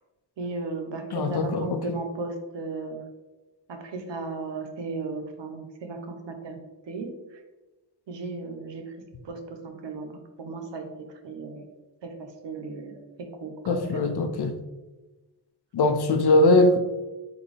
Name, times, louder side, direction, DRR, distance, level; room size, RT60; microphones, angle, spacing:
voice 1, 0.4-3.0 3.7-6.6 6.9-7.4 8.1-9.0 9.2-11.7 12.0-14.2, right 3 dB, 75° right, 0.7 m, -36 dB
voice 2, 1.1-1.8 13.7-14.5 15.7-16.8, left 2 dB, 60° left, 0.6 m, -21 dB
4.0 x 3.3 x 3.3 m
wide cardioid pair, 100°, 44 cm